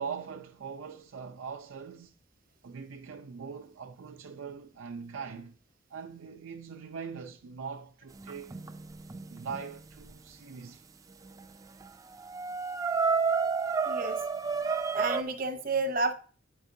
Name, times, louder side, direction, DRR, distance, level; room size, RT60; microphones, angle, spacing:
voice 1, 0.0-2.1 2.6-5.6 5.9-8.6 9.3-10.8, right 6 dB, 85° right, 0.5 m, -41 dB
sound 1, 8.2-10.0 11.4-11.5 11.8-11.9 12.2-15.2, right 5 dB, 15° right, 0.3 m, -30 dB
voice 2, 13.9-14.2 14.9-16.1, right 3 dB, 45° right, 0.7 m, -30 dB
9.1 x 4.8 x 2.7 m
head